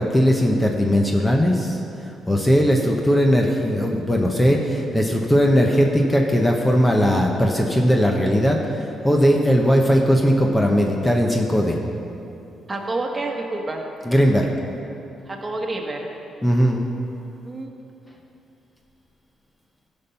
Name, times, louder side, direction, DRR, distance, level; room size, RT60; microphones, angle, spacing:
voice 1, 0.0-1.8 2.3-11.8 14.0-14.5 16.4-16.8, equal, 10° left, 1 dB, 0.9 m, -18 dB
voice 2, 12.7-13.8 15.3-16.1 17.4-17.7, right 2 dB, 20° right, 1 dB, 1.5 m, -28 dB
14.0 x 5.4 x 5.7 m, 2.8 s
cardioid pair, 90°, 0 cm